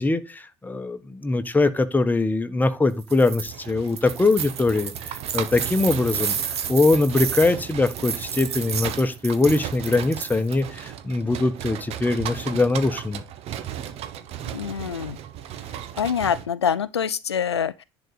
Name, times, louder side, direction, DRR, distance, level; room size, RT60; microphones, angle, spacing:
voice 1, 0.0-13.2, left 3 dB, 15° left, 1.3 m, -22 dB
sound 1, 3.0-3.5 3.9-10.6, right 8 dB, 75° right, 1.0 m, -31 dB
sound 2, 3.5-16.5, right 10 dB, 50° right, 1.1 m, -36 dB
voice 2, 14.5-15.2 16.0-17.8, left 7 dB, 80° left, 0.5 m, -25 dB
10.5 x 4.1 x 6.6 m
figure-of-eight pair, 60°, 14 cm